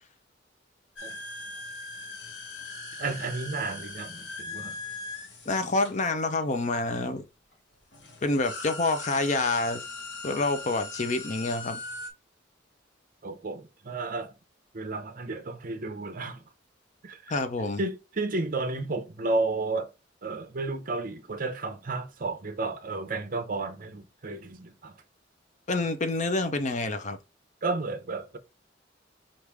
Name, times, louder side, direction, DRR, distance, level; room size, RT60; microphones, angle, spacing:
sound 1, 1.0-6.7 7.5-7.6 7.9-12.1, left 3 dB, 70° left, 1.1 m, -40 dB
voice 1, 3.0-4.8 13.2-14.3 14.7-16.4 17.0-17.4 17.8-19.9 20.2-25.0 27.6-28.4, right 3 dB, 50° right, 0.7 m, -32 dB
voice 2, 5.5-7.2 8.2-9.8 10.2-11.8 17.3-17.8 25.7-27.2, left 2 dB, 40° left, 0.6 m, -27 dB
4.8 x 2.6 x 3.4 m
head